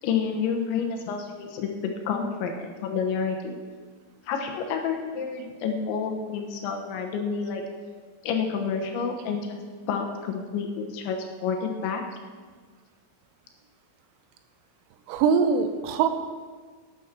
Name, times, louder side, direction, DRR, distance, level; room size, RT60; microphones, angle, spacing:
voice 1, 0.0-3.6 4.3-7.6 8.2-9.6 9.9-12.0, left 6 dB, 75° left, 3 dB, 3.2 m, -29 dB
voice 2, 15.1-16.1, right 6 dB, 85° right, 8 dB, 3.5 m, -22 dB
11.5 x 10.5 x 6.0 m, 1.5 s
omnidirectional pair, 5.8 m